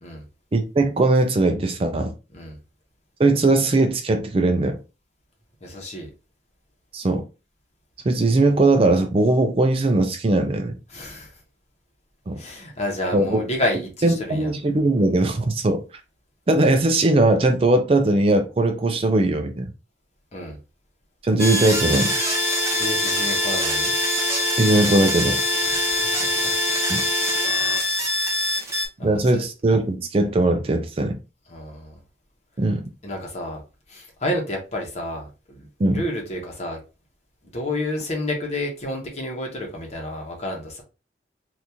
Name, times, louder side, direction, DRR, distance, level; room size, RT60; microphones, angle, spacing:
voice 1, 0.5-2.1 3.2-4.8 6.9-7.2 8.0-10.7 12.3-12.4 13.1-13.4 14.0-15.8 16.5-19.7 21.2-22.1 24.6-25.4 26.9-27.0 29.0-31.2 32.6-32.8 35.8-36.0, right 2 dB, 30° right, 0.4 m, -19 dB
voice 2, 5.6-6.1 10.9-11.4 12.4-14.5 20.3-20.6 22.8-23.9 25.6-26.5 28.4-28.7 29.0-29.4 31.5-32.0 33.0-33.6 33.9-36.8 37.5-40.8, left 1 dB, 35° left, 1.0 m, -30 dB
sound 1, 21.4-28.9, left 1 dB, 15° right, 0.8 m, -23 dB
2.9 x 2.6 x 3.5 m
head